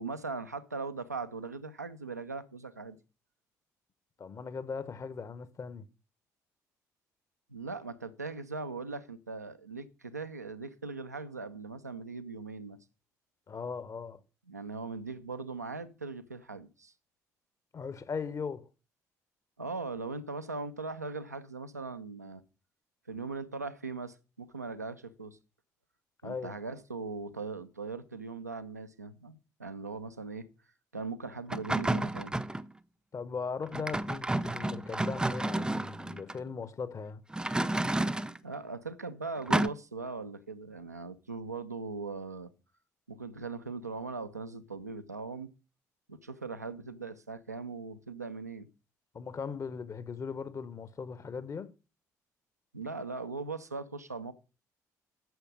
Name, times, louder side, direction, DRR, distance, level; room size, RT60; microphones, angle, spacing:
voice 1, 0.0-3.0 7.5-12.8 14.5-16.9 19.6-22.4 23.1-25.4 26.2-30.5 30.9-32.4 38.4-42.5 43.1-45.5 46.1-48.7 52.7-54.3, right 4 dB, 90° right, 0.5 m, -40 dB
voice 2, 4.2-5.9 13.5-14.2 17.7-18.7 26.2-26.6 33.1-37.2 49.1-51.7, left 5 dB, 35° left, 1.0 m, -38 dB
sound 1, 31.5-32.7 33.7-36.3 37.3-38.4 39.5-39.7, right 1 dB, 10° right, 0.5 m, -31 dB
9.2 x 7.1 x 5.3 m
figure-of-eight pair, 45°, 9 cm